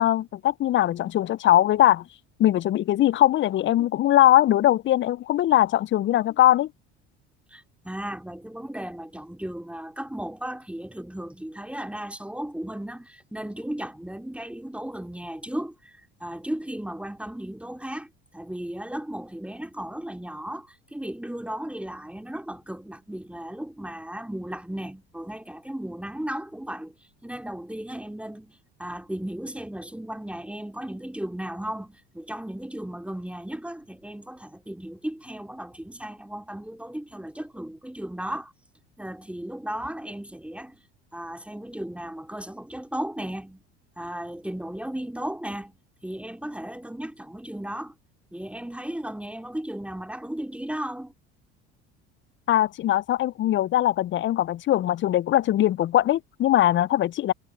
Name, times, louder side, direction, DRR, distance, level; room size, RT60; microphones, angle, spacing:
voice 1, 0.0-2.0 2.4-6.7 52.5-57.3, left 13 dB, 35° left, 0.5 m, -21 dB
voice 2, 7.5-26.9 27.2-38.5 39.0-40.8 41.1-43.6 44.0-45.8 46.0-47.9 48.3-51.1, right 1 dB, 5° right, 2.5 m, -35 dB
hypercardioid pair, 70°, 33 cm